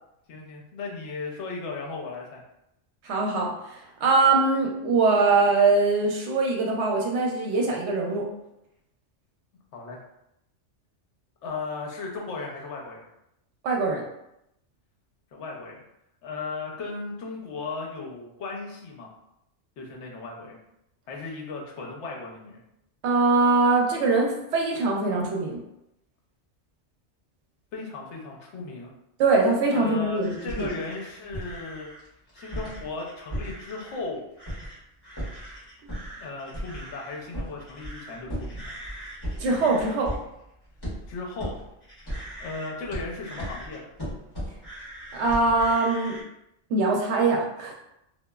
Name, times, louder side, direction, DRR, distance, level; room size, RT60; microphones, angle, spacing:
voice 1, 0.3-2.4 9.7-10.0 11.4-13.1 15.3-15.8 16.2-19.1 19.8-20.6 21.1-22.6 27.7-28.9 29.7-31.9 32.3-34.3 36.2-38.7 41.1-41.5 42.4-43.9, left 3 dB, 70° left, -1 dB, 0.9 m, -36 dB
voice 2, 3.0-8.2 13.6-14.0 23.0-25.6 29.2-30.7 39.4-40.1 45.1-46.2 46.7-47.7, right 3 dB, 70° right, 0 dB, 0.8 m, -22 dB
sound 1, 30.2-34.0 34.4-34.8 35.0-46.2, equal, 20° left, 1.1 m, -37 dB
2.9 x 2.3 x 2.2 m, 0.83 s
omnidirectional pair, 1.2 m